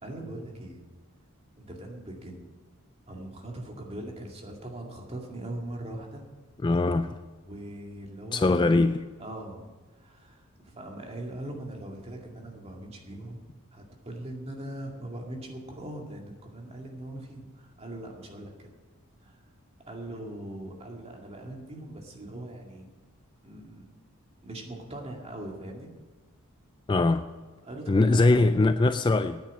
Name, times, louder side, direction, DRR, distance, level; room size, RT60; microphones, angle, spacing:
voice 1, 0.0-0.8 1.6-2.5 3.1-6.3 7.5-8.5 9.2-13.4 13.7-18.7 19.2-19.4 19.9-22.9 23.4-23.8 24.4-25.9 27.6-28.2, right 1 dB, 30° right, 0 dB, 2.1 m, -41 dB
voice 2, 6.6-7.1 8.3-9.0 26.9-27.3 27.9-29.4, left 2 dB, 20° left, 10 dB, 0.3 m, -22 dB
10.0 x 9.0 x 8.4 m, 1.4 s
head